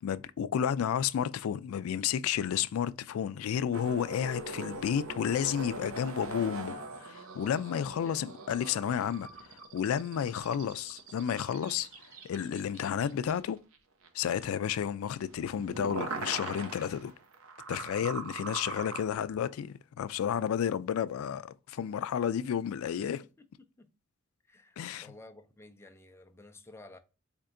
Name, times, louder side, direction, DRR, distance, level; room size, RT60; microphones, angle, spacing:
voice 1, 0.0-11.9 12.2-13.6 14.1-17.1 17.7-23.2 24.8-25.1, left 8 dB, 90° left, 0.3 m, -32 dB
sound 1, 3.7-13.8 14.0-14.1 14.4-19.0, right 3 dB, 75° right, 0.7 m, -42 dB
voice 2, 23.0-23.9 24.5-27.0, left 2 dB, 10° left, 0.4 m, -53 dB
4.4 x 2.7 x 2.5 m
head